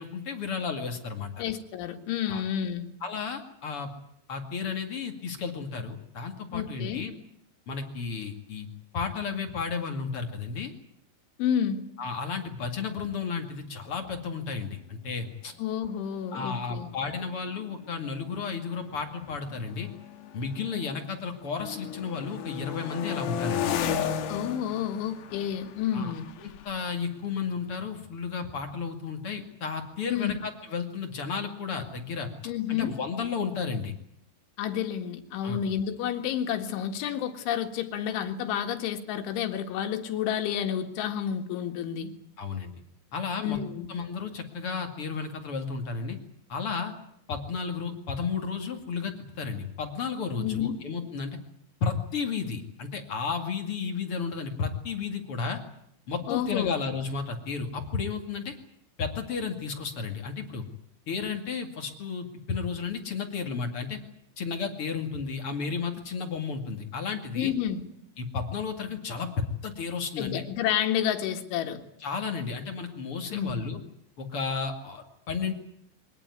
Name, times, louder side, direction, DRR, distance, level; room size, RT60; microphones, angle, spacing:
voice 1, 0.0-1.4 2.3-2.4 3.0-3.9 4.3-7.1 7.7-8.7 8.9-10.7 12.0-15.5 16.3-19.9 20.3-23.7 25.9-26.1 26.4-32.3 32.7-33.9 35.4-35.6 42.4-42.7 43.1-43.6 43.9-46.2 46.5-46.9 47.3-51.4 51.8-55.6 56.1-58.6 59.0-60.7 61.1-64.0 64.4-67.5 68.2-70.4 72.0-73.8 74.2-75.5, left 5 dB, 40° left, 4 dB, 2.2 m, -33 dB
voice 2, 1.4-2.9 6.5-7.0 11.4-11.9 15.6-16.9 24.3-26.3 30.1-30.4 32.5-32.9 34.6-42.1 43.4-43.9 50.4-50.8 56.3-56.8 67.4-67.8 70.2-71.8 73.3-73.7, left 9 dB, 85° left, 6 dB, 4.2 m, -30 dB
sound 1, 15.7-15.8 16.1-16.4 17.2-21.1 21.4-28.1, left 8 dB, 65° left, 3.0 m, -36 dB
23.0 x 19.0 x 9.6 m, 0.71 s
omnidirectional pair, 5.3 m